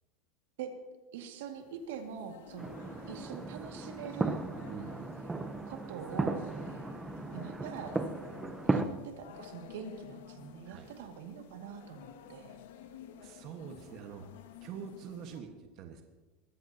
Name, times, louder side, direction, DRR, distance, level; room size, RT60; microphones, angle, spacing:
voice 1, 1.1-2.7 3.1-4.4 5.7-6.5 7.3-7.9 8.7-12.6, right 7 dB, 85° right, 4 dB, 2.1 m, -44 dB
sound 1, 1.4-15.4, left 8 dB, 85° left, 1.4 m, -52 dB
sound 2, 2.6-8.9, right 3 dB, 10° right, 0.8 m, -36 dB
voice 2, 4.6-4.9 10.6-10.9 13.2-14.2 14.6-16.0, right 7 dB, 45° right, 4 dB, 1.5 m, -45 dB
21.5 x 14.5 x 2.9 m, 1.3 s
supercardioid pair, 145°, 0 cm